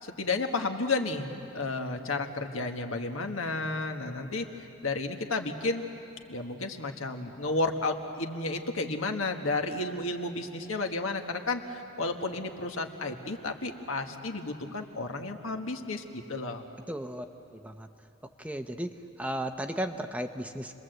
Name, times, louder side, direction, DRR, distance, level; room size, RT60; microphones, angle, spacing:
voice 1, 0.0-1.3 1.5-4.5 4.8-5.8 6.3-16.7, left 3 dB, 75° left, 4 dB, 1.6 m, -32 dB
voice 2, 16.9-17.2 17.6-17.9 18.4-18.9 19.2-20.7, right 1 dB, 5° right, 6 dB, 0.7 m, -34 dB
29.0 x 22.0 x 8.0 m, 2.8 s
head